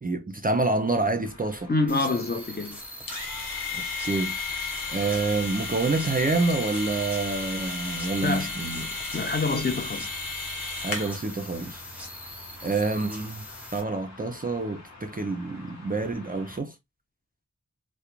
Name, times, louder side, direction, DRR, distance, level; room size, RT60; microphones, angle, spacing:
voice 1, 0.0-1.7 3.7-4.4 4.9-8.9 10.8-11.8 12.6-13.4 13.7-16.7, right 3 dB, 25° right, 0.4 m, -27 dB
sound 1, 1.2-16.6, left 1 dB, 55° left, 0.9 m, -49 dB
voice 2, 1.7-2.8 8.2-8.5 9.1-10.1, left 3 dB, 30° left, 0.5 m, -26 dB
sound 2, 1.9-13.8, left 1 dB, 5° right, 0.8 m, -42 dB
sound 3, 3.1-11.2, left 4 dB, 90° left, 0.6 m, -34 dB
2.4 x 2.1 x 2.9 m
wide cardioid pair, 55°, 33 cm